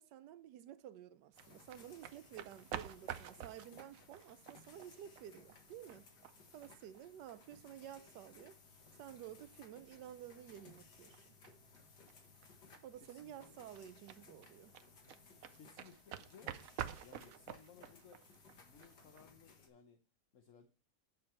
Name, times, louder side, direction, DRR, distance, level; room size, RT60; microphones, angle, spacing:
voice 1, 0.0-6.1 6.5-11.4 12.8-14.7, right 11 dB, 90° right, 1.3 m, -53 dB
sound 1, 1.3-19.7, left 5 dB, 85° left, 2.3 m, -62 dB
sound 2, 1.3-19.2, right 10 dB, 65° right, 0.9 m, -51 dB
voice 2, 13.0-13.6 15.5-16.6 17.0-18.2 18.6-20.0 20.3-20.7, left 6 dB, 55° left, 1.2 m, -61 dB
10.5 x 6.4 x 4.4 m
omnidirectional pair, 1.8 m